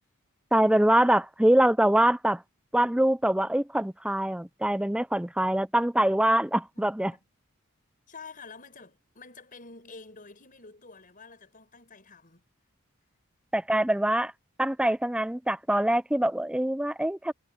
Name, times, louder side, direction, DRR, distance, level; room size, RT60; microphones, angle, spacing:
voice 1, 0.5-2.4 2.7-7.1 13.5-14.3 14.6-17.3, right 1 dB, 5° right, 0.5 m, -24 dB
voice 2, 6.7-7.2 8.1-12.5, left 4 dB, 40° left, 5.8 m, -48 dB
head